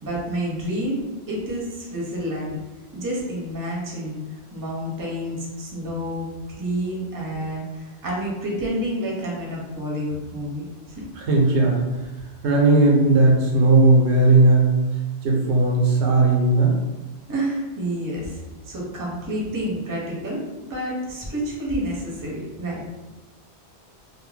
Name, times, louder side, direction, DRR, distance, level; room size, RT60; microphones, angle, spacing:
voice 1, 0.0-1.0 1.3-2.6 2.9-4.2 4.5-6.3 6.6-10.6 17.3-20.4 20.7-22.8, equal, 25° right, -4 dB, 0.5 m, -29 dB
voice 2, 11.3-11.8 12.4-14.7 15.2-16.7, right 2 dB, 90° right, -1 dB, 1.0 m, -16 dB
2.5 x 2.1 x 3.2 m, 1.1 s
omnidirectional pair, 1.1 m